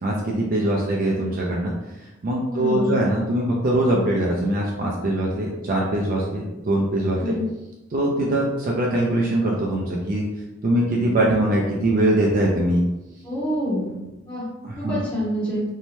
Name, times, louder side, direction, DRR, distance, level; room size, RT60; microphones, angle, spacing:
voice 1, 0.0-1.7 2.0-7.3 7.9-10.3 10.6-12.8 14.6-15.0, right 1 dB, 45° right, -2 dB, 0.3 m, -22 dB
voice 2, 2.5-2.9 7.2-7.4 13.2-13.9 14.3-14.4 14.8-15.6, equal, 25° left, -10 dB, 0.8 m, -26 dB
2.7 x 2.1 x 3.0 m, 1.0 s
head